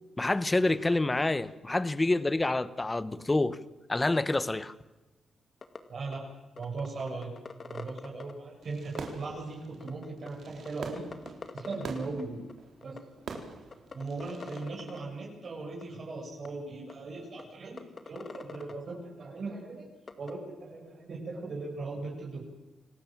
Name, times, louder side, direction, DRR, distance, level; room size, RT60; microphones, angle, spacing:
voice 1, 0.2-3.6 3.9-4.7, left 2 dB, 20° left, 1.4 m, -27 dB
sound 1, 5.6-5.8 6.1-6.2 6.6-8.3 8.9-9.1 9.8-10.3 10.6-10.7 11.0-12.2 12.5-12.6 12.8-13.0 13.3-13.4 13.7-15.0 15.8-15.9 16.4-16.5 16.9-17.0 17.4-17.5 17.8-18.7 20.1-20.3, left 4 dB, 45° left, 2.3 m, -42 dB
voice 2, 5.9-6.3 6.5-7.3 7.7-11.0 11.5-12.4 12.8-13.0 13.9-17.8 18.1-19.9 20.2-22.4, right 3 dB, 55° right, 7.3 m, -38 dB
Fireworks, 8.6-14.6, right 5 dB, 70° right, 4.2 m, -45 dB
28.5 x 19.0 x 7.7 m
cardioid pair, 85°, 0 cm